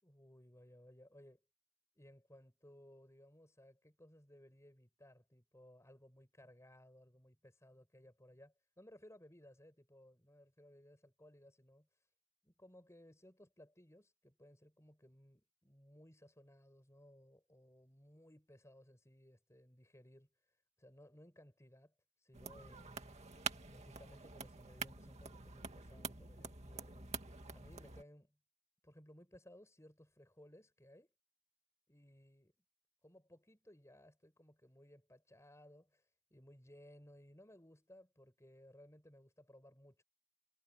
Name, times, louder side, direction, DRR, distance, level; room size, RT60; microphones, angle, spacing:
voice 1, 0.0-1.4 2.0-11.9 12.4-20.3 20.8-21.9 22.2-23.2 23.7-27.1 27.5-28.4 28.8-31.1 31.9-32.5 33.0-40.0, left 1 dB, 15° left, 7.5 m, -61 dB
sound 1, 22.3-28.0, right 5 dB, 30° right, 2.3 m, -47 dB
head